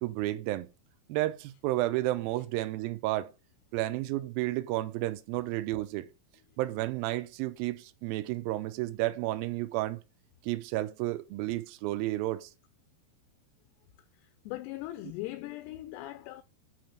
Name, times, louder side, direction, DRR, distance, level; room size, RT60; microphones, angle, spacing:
voice 1, 0.0-0.7 1.1-3.3 3.7-6.1 6.6-10.0 10.4-12.5, right 17 dB, 80° right, 2.1 m, -31 dB
voice 2, 14.5-16.4, left 17 dB, 85° left, 2.7 m, -39 dB
8.5 x 3.1 x 6.5 m
omnidirectional pair, 4.8 m